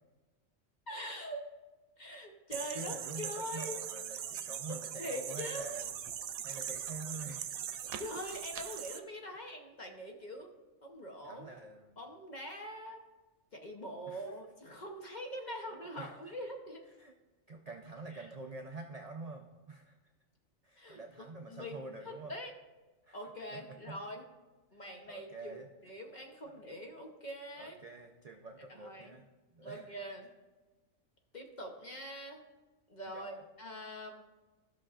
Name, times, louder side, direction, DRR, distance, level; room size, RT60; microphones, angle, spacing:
voice 1, 0.9-1.5 2.0-3.8 4.7-5.7 8.0-10.5 10.8-11.5 12.0-13.0 13.5-16.8 18.1-18.3 20.8-22.5 23.1-24.2 24.7-27.8 28.7-29.2 29.6-30.3 31.3-32.4 32.9-34.1, equal, 40° left, 2 dB, 0.9 m, -44 dB
voice 2, 2.5-6.0 6.4-7.6 9.3-9.6 11.2-12.0 14.1-14.3 16.0-16.2 17.0-17.1 17.5-20.0 20.6-22.3 23.0-23.2 23.5-24.0 24.7-24.8 25.1-25.7 26.4-26.6 27.6-29.8 33.1-33.4, right 3 dB, 50° right, 3 dB, 0.4 m, -47 dB
sound 1, 2.5-9.0, right 9 dB, 85° right, 1.0 m, -41 dB
14.0 x 6.2 x 2.5 m, 1.2 s
omnidirectional pair, 1.4 m